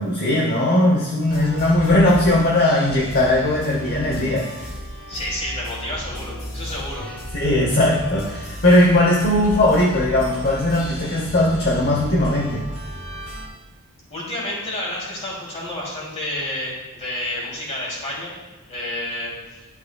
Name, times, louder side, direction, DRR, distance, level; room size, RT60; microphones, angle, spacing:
voice 1, 0.0-4.5 7.3-12.6, left 1 dB, 45° left, -2 dB, 0.9 m, -18 dB
sound 1, 1.3-13.5, equal, 70° left, 2.8 m, -34 dB
voice 2, 5.1-7.1 14.1-18.3 18.7-19.3, left 1 dB, 30° left, -5 dB, 2.8 m, -30 dB
11.0 x 7.1 x 2.3 m, 1.2 s
head